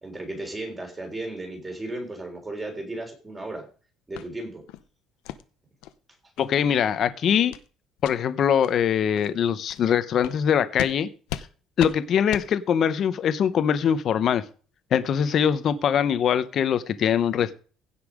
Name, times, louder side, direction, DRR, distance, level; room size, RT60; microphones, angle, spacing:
voice 1, 0.0-3.7 4.1-4.6, right 2 dB, 15° right, 2 dB, 3.8 m, -35 dB
sound 1, 4.1-4.3 4.7-4.8 5.2-5.4 5.8-5.9 6.4-6.5 6.9-7.1 7.5-7.7 8.0-8.1 8.6-8.7 9.1-9.3 9.7-9.8 10.2-10.4 10.8-10.9 11.3-11.5 11.8-11.9 12.3-12.5, left 13 dB, 90° left, 0.9 m, -35 dB
voice 2, 6.4-7.6 8.0-11.1 11.8-14.4 14.9-17.5, left 8 dB, 40° left, 12 dB, 0.9 m, -22 dB
16.0 x 5.6 x 5.0 m, 0.38 s
cardioid pair, 165°, 0 cm